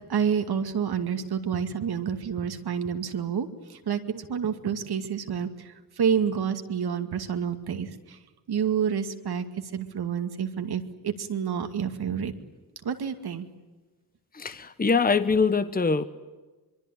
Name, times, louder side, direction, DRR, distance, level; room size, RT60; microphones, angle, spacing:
voice 1, 0.1-8.2 8.5-9.4 9.7-12.3 12.8-13.5, right 7 dB, 70° right, 7 dB, 2.4 m, -29 dB
voice 2, 14.3-16.0, left 4 dB, 20° left, 12 dB, 1.2 m, -23 dB
24.0 x 23.0 x 10.0 m, 1.2 s
cardioid pair, 70°, 40 cm